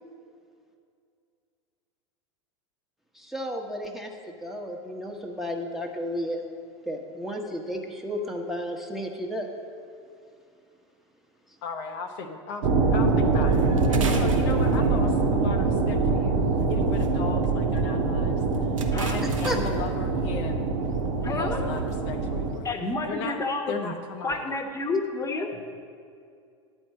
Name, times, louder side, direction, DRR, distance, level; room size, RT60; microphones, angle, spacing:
voice 1, 3.1-6.4 6.8-9.5 19.2-19.6, equal, ahead, 1 dB, 1.1 m, -33 dB
voice 2, 11.6-13.6 13.9-18.3 19.0-20.6 21.3-22.7 23.1-23.4 23.7-24.3, left 5 dB, 55° left, 4 dB, 0.7 m, -36 dB
sound 1, 12.6-22.6, right 3 dB, 60° right, 1.2 m, -24 dB
sound 2, 13.5-15.2 16.6-17.1 17.4-17.5 17.8-17.9 18.3-19.9 20.9-21.1 21.6-22.0 22.4-22.6, right 5 dB, 80° right, 0.8 m, -39 dB
voice 3, 18.9-19.3 21.2-21.7 22.6-23.9 24.2-25.7, left 3 dB, 20° left, 4 dB, 1.1 m, -30 dB
10.5 x 4.5 x 7.6 m, 2.4 s
hypercardioid pair, 90°, 16 cm